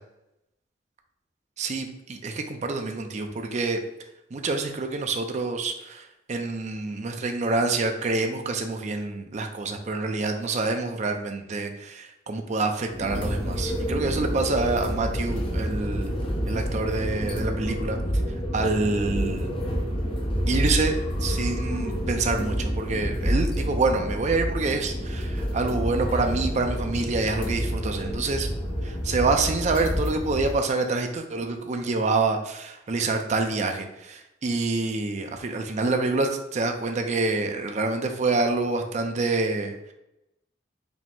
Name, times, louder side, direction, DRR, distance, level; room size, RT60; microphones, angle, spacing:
voice 1, 1.6-3.8 4.3-16.2 16.5-18.0 18.5-19.5 20.5-28.5 28.8-39.9, right 3 dB, 40° right, 5 dB, 0.4 m, -27 dB
sound 1, 12.9-30.5, equal, 30° left, 0.6 m, -28 dB
4.9 x 2.0 x 3.5 m, 0.88 s
head